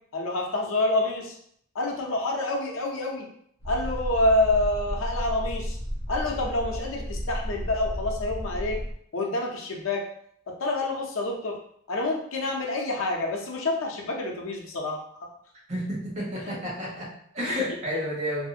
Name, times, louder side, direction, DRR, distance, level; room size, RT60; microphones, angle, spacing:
voice 1, 0.1-1.3 1.7-3.3 3.6-5.8 6.1-8.8 9.1-10.0 10.6-11.6 11.9-15.0 16.4-16.6, left 2 dB, 90° left, 1 dB, 0.6 m, -27 dB
sound 1, 3.6-8.9, equal, 30° left, 0.7 m, -33 dB
voice 2, 15.7-18.5, equal, 35° right, -7 dB, 1.0 m, -31 dB
2.7 x 2.4 x 2.7 m, 0.67 s
head